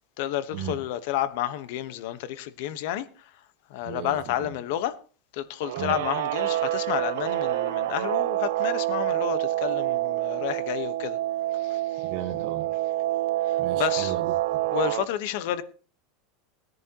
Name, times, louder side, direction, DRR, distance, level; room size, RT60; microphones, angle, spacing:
voice 1, 0.2-3.4 3.7-5.0 5.3-11.2 11.5-12.1 13.4-14.1 14.7-15.6, left 12 dB, 60° left, 1.1 m, -31 dB
voice 2, 3.8-4.5 5.8-5.9 12.0-12.7 13.6-14.7, right 10 dB, 50° right, 1.6 m, -36 dB
Guitar, 5.6-15.0, right 15 dB, 80° right, 0.6 m, -27 dB
20.0 x 10.5 x 3.0 m
supercardioid pair, 160°, 0 cm